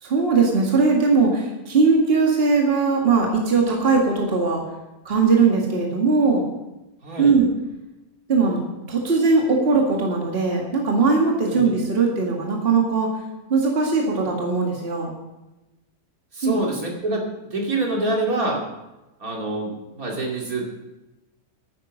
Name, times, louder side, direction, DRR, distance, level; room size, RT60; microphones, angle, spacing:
voice 1, 0.0-4.6 5.1-6.5 7.2-7.5 8.3-8.6 8.9-13.2 13.5-15.1 16.4-16.6, right 4 dB, 40° right, 0 dB, 2.0 m, -19 dB
voice 2, 7.0-7.3 11.5-11.7 16.3-18.6 19.2-20.6, right 2 dB, 70° right, -1 dB, 3.0 m, -26 dB
11.0 x 9.5 x 6.3 m, 1.0 s
omnidirectional pair, 1.6 m